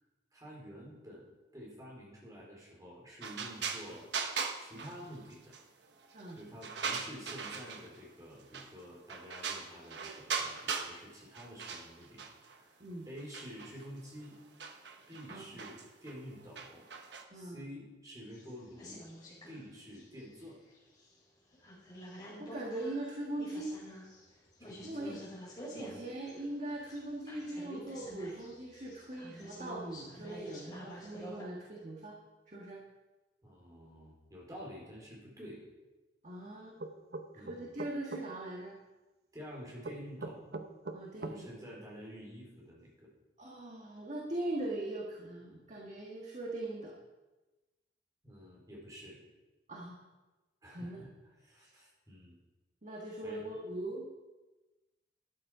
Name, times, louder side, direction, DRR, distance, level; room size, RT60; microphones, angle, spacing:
voice 1, 0.3-1.3 1.5-4.2 4.6-5.6 6.4-12.2 12.5-12.7 13.0-14.4 15.1-16.8 17.3-19.0 19.5-20.6 24.6-25.2 25.8-26.0 33.4-35.6 37.3-37.8 39.3-40.5 41.3-43.1 48.2-49.2 50.6-51.1 51.4-52.4 53.2-53.4, equal, 20° right, -3 dB, 4.1 m, -49 dB
sound 1, 3.2-5.6 6.0-8.0 8.5-8.8 9.1-11.0 11.3-12.6 13.2-17.2, right 5 dB, 85° right, 1.1 m, -39 dB
voice 2, 15.3-15.6 17.3-17.7 22.4-23.8 24.8-25.2 25.7-32.2 32.5-32.8 36.2-36.8 37.3-38.8 40.9-41.5 43.4-47.0 49.7-50.0 50.7-51.0 52.8-54.1, right 1 dB, 40° right, -2 dB, 1.6 m, -41 dB
sound 2, 18.3-19.6 19.9-21.1 21.5-31.4, equal, 25° left, 4.9 m, -49 dB
sound 3, 36.8-38.2 39.8-41.4, right 2 dB, 60° right, 0.8 m, -41 dB
12.5 x 10.0 x 4.9 m, 1.1 s
head